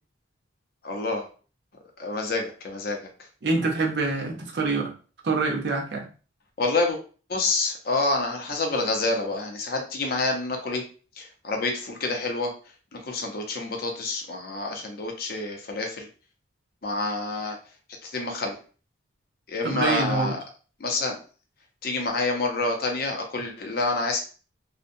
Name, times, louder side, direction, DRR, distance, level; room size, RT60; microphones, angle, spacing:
voice 1, 0.8-1.3 2.0-3.0 6.6-7.0 7.3-10.8 11.2-12.5 12.9-16.1 16.8-17.6 18.0-18.6 19.5-20.4 20.8-21.2 21.8-24.2, left 3 dB, 50° left, 2 dB, 0.5 m, -27 dB
voice 2, 3.4-4.9 5.2-6.1 19.6-20.4, right 3 dB, 55° right, 0 dB, 0.6 m, -25 dB
2.6 x 2.1 x 2.5 m, 0.38 s
head